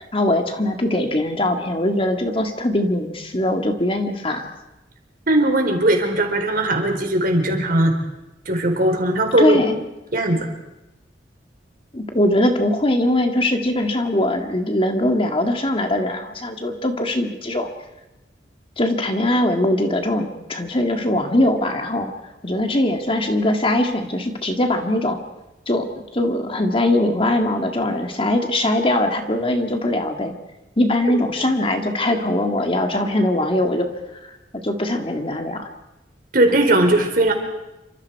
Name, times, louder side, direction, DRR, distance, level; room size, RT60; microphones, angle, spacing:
voice 1, 0.1-4.5 9.4-9.8 11.9-17.7 18.8-22.1 22.4-25.2 25.7-30.4 30.8-33.9 34.2-34.3 34.6-35.7, left 1 dB, 30° left, 4 dB, 2.0 m, -21 dB
voice 2, 5.3-7.9 8.5-9.6 10.1-10.5 31.1-31.2 36.3-37.3, right 1 dB, 50° right, 4 dB, 4.4 m, -18 dB
28.5 x 25.5 x 4.8 m, 0.97 s
head